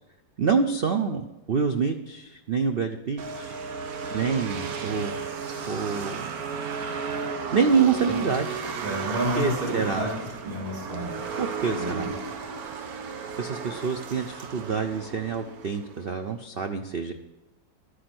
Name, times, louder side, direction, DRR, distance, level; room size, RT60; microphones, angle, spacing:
voice 1, 0.4-3.5 4.1-5.1 5.7-6.3 7.5-8.6 9.4-10.0 11.4-12.1 13.4-17.1, right 5 dB, 85° right, 7 dB, 0.5 m, -26 dB
sound 1, 3.2-16.2, right 5 dB, 55° right, 1.4 m, -34 dB
voice 2, 8.8-10.2 10.4-11.2 11.8-12.1, right 1 dB, 30° right, -3 dB, 3.0 m, -30 dB
12.0 x 9.9 x 6.0 m, 1.1 s
omnidirectional pair, 2.0 m